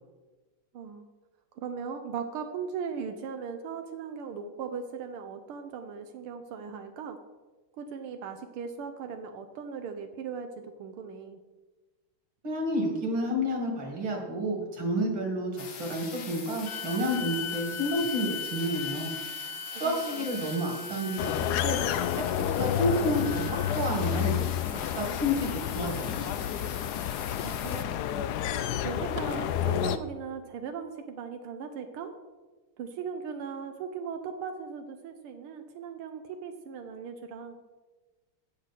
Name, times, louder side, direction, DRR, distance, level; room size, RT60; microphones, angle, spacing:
voice 1, 0.7-1.1 1.5-7.2 7.8-11.4 19.7-20.3 27.4-28.0 28.8-32.1 32.8-37.6, right 6 dB, 85° right, 6 dB, 1.7 m, -38 dB
voice 2, 12.4-19.1 19.8-21.8 22.6-24.4 24.7-26.2, equal, 65° right, 1 dB, 2.9 m, -30 dB
sound 1, 15.6-27.8, left 6 dB, 55° left, 1.0 m, -43 dB
sound 2, 16.6-24.1, left 6 dB, 35° left, 1.6 m, -39 dB
sound 3, 21.2-30.0, left 10 dB, 85° left, 0.8 m, -30 dB
17.0 x 6.3 x 4.2 m, 1.2 s
omnidirectional pair, 2.3 m